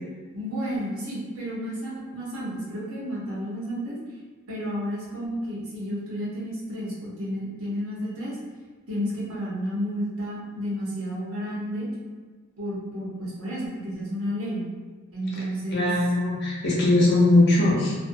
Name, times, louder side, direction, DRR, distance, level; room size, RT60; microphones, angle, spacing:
voice 1, 0.3-4.0 4.5-8.4 8.9-11.9 12.6-14.7 15.1-15.9, equal, 80° right, -6 dB, 0.9 m, -31 dB
voice 2, 15.7-18.0, left 2 dB, 50° left, -5 dB, 0.6 m, -20 dB
2.5 x 2.1 x 2.6 m, 1.4 s
head